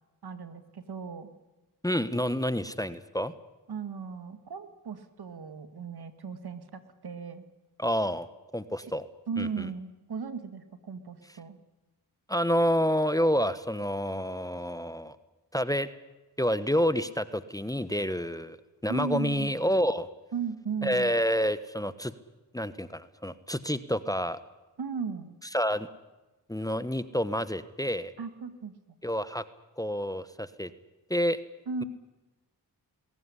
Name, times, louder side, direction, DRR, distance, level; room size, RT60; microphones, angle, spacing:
voice 1, 0.2-1.3 3.7-7.4 9.3-11.6 18.9-19.5 20.3-21.1 24.8-25.3 28.2-28.7 31.7-31.8, right 5 dB, 60° right, 10 dB, 2.2 m, -36 dB
voice 2, 1.8-3.3 7.8-8.3 8.5-9.1 9.4-9.7 12.3-15.2 15.5-15.9 16.4-18.6 18.8-20.1 20.8-22.1 22.5-24.4 25.5-25.9 26.5-28.1 29.0-29.4 29.8-30.7 31.1-31.4, equal, 10° left, 14 dB, 1.2 m, -28 dB
20.5 x 17.5 x 9.9 m, 1.1 s
supercardioid pair, 45°, 42 cm